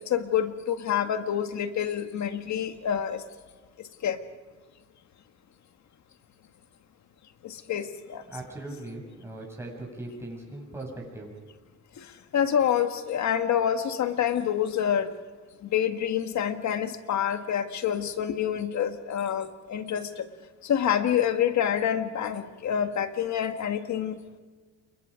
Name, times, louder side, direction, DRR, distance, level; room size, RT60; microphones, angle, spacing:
voice 1, 0.0-3.2 4.0-4.2 7.4-8.2 12.0-12.1 12.3-15.1 15.6-20.3 20.6-24.2, left 9 dB, 70° left, 8 dB, 1.8 m, -27 dB
voice 2, 8.3-11.3, right 2 dB, 10° right, -1 dB, 7.6 m, -39 dB
28.5 x 22.5 x 5.1 m, 1.4 s
cardioid pair, 90°, 30 cm